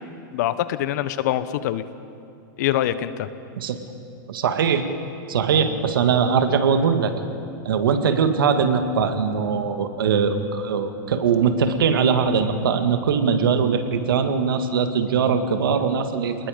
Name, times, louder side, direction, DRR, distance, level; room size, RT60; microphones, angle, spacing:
voice 1, 0.3-1.8 2.6-3.3, left 12 dB, 55° left, 13 dB, 1.0 m, -24 dB
voice 2, 4.3-4.9 5.3-7.1 7.7-16.4, right 6 dB, 85° right, 7 dB, 1.9 m, -21 dB
27.5 x 20.5 x 5.2 m, 2.6 s
supercardioid pair, 160°, 11 cm